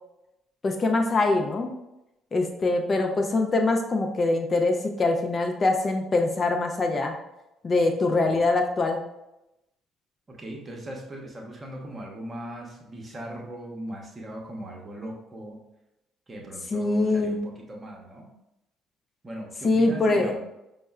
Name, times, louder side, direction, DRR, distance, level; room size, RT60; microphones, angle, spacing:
voice 1, 0.6-1.7 2.3-7.1 7.6-9.0 16.7-17.4 19.6-20.3, left 2 dB, 35° left, 3 dB, 0.4 m, -23 dB
voice 2, 10.3-15.6 16.3-18.3 19.2-20.4, right 1 dB, 30° right, 0 dB, 0.7 m, -39 dB
5.2 x 2.0 x 2.2 m, 0.91 s
figure-of-eight pair, 50°, 0 cm